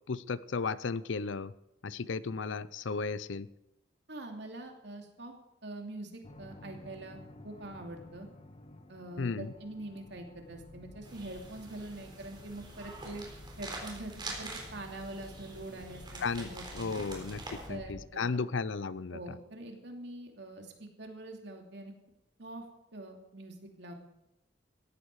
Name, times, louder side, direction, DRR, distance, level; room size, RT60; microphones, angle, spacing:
voice 1, 0.1-1.5 1.8-3.5 9.2-9.5 16.2-16.5 16.7-19.2, left 4 dB, 80° left, 18 dB, 0.6 m, -34 dB
voice 2, 4.1-5.3 5.6-7.2 7.4-8.3 8.9-13.2 13.6-17.0 17.7-18.4 19.1-21.9 22.4-22.6 22.9-23.9, right 2 dB, 65° right, 3 dB, 2.8 m, -44 dB
sound 1, 6.2-18.1, left 1 dB, 30° left, 1.1 m, -51 dB
sound 2, 11.0-17.7, right 2 dB, 25° right, 4.0 m, -46 dB
17.5 x 14.5 x 4.8 m, 0.89 s
head